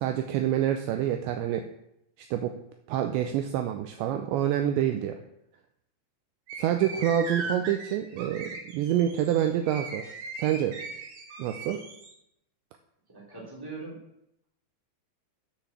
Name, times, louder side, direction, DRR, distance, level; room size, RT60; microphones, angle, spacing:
voice 1, 0.0-1.7 2.2-2.5 2.9-5.2 6.6-10.1 10.3-10.8 11.4-11.8, right 11 dB, 85° right, 6 dB, 2.6 m, -27 dB
sound 1, 6.5-12.1, right 3 dB, 60° right, 3.7 m, -39 dB
voice 2, 13.1-14.0, right 3 dB, 5° right, -5 dB, 2.6 m, -41 dB
10.5 x 6.1 x 7.5 m, 0.80 s
omnidirectional pair, 5.8 m